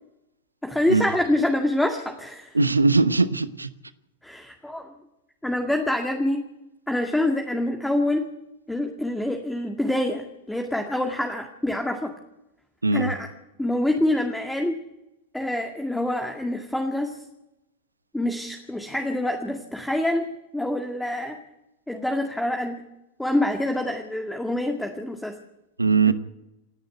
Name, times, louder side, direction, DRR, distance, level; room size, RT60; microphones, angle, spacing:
voice 1, 0.6-2.5 4.2-4.9 5.4-6.4 6.9-8.2 8.7-12.1 12.9-13.3 13.6-14.8 15.3-17.2 18.1-20.3 20.5-21.4 21.9-22.8 23.2-25.4 26.1-26.2, left 1 dB, 5° left, 2.1 m, -26 dB
voice 2, 2.5-3.7 12.8-13.1 25.8-26.1, right 4 dB, 80° right, 1.0 m, -20 dB
28.0 x 10.5 x 9.2 m
figure-of-eight pair, 90°, 0 cm